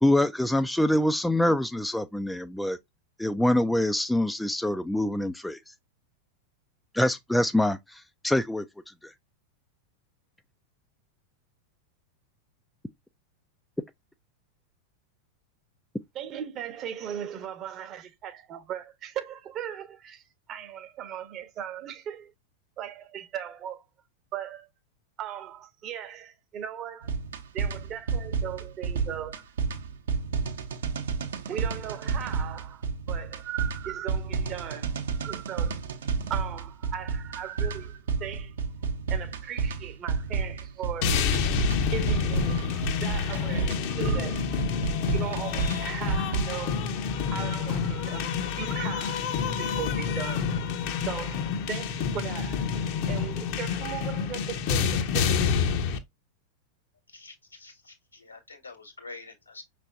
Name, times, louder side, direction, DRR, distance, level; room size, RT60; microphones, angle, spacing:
voice 1, 0.0-2.8 3.2-5.6 6.9-8.7 9.0-9.1, left 1 dB, 5° left, 0.3 m, -25 dB
voice 2, 16.1-22.3 22.8-23.8 24.3-24.7 25.2-27.2 27.5-29.4 31.5-35.0 35.2-35.8 36.3-38.6 39.1-41.2 41.9-44.5 45.1-47.0 47.3-50.5 51.0-52.7 53.1-55.5, right 10 dB, 35° right, 0.8 m, -38 dB
sound 1, 27.0-46.7, right 5 dB, 65° right, 0.8 m, -31 dB
sound 2, 41.0-56.0, left 6 dB, 45° left, 0.7 m, -28 dB
voice 3, 57.1-59.6, left 3 dB, 85° left, 1.8 m, -46 dB
5.7 x 3.3 x 2.5 m
figure-of-eight pair, 90°, 0 cm